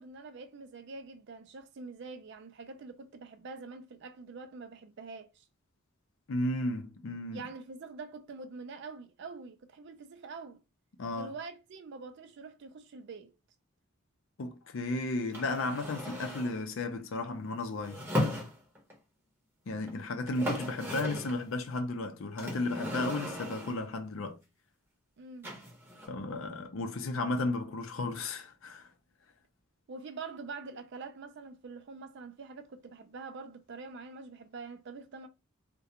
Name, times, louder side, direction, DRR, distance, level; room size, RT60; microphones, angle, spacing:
voice 1, 0.0-5.4 7.3-10.6 11.1-13.3 25.2-25.5 29.9-35.3, right 4 dB, 55° right, 0.4 m, -45 dB
voice 2, 6.3-7.5 11.0-11.3 14.4-18.0 19.7-24.4 26.1-28.9, left 2 dB, 65° left, 0.5 m, -34 dB
sound 1, 15.3-16.6 17.8-18.9 19.9-20.0 20.2-21.4 22.4-23.9 25.4-26.1, left 1 dB, 10° right, 0.7 m, -36 dB
2.4 x 2.1 x 2.8 m
head